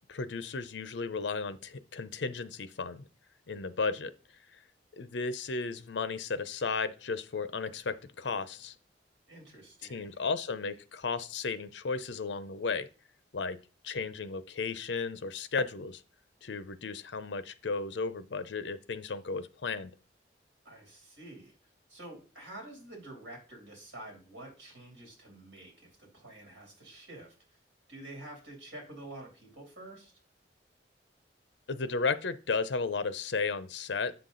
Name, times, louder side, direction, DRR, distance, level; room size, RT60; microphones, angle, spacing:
voice 1, 0.1-3.1 3.5-4.1 4.5-4.6 5.0-8.7 9.9-12.9 13.3-13.6 13.8-16.0 16.4-19.9 31.7-34.1, left 4 dB, 70° left, 14 dB, 0.6 m, -34 dB
voice 2, 9.3-10.2 20.6-21.5 21.9-27.3 27.9-30.1, right 1 dB, 70° right, 1 dB, 3.2 m, -48 dB
7.8 x 5.9 x 3.8 m, 0.35 s
head